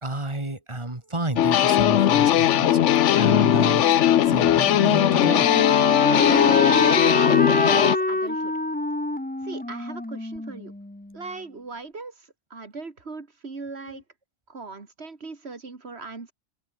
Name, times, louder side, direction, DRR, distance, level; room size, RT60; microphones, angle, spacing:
voice 1, 0.0-5.5 13.9-14.0, right 2 dB, 20° right, 3.0 m, -31 dB
sound 1, 1.4-8.0, left 11 dB, 65° left, 1.0 m, -19 dB
Wind instrument woodwind instrument, 4.3-11.1, left 1 dB, 10° left, 0.8 m, -26 dB
voice 2, 6.5-8.6 9.4-10.7 11.1-14.0 14.5-16.3, right 4 dB, 50° right, 2.4 m, -38 dB
omnidirectional pair, 1.4 m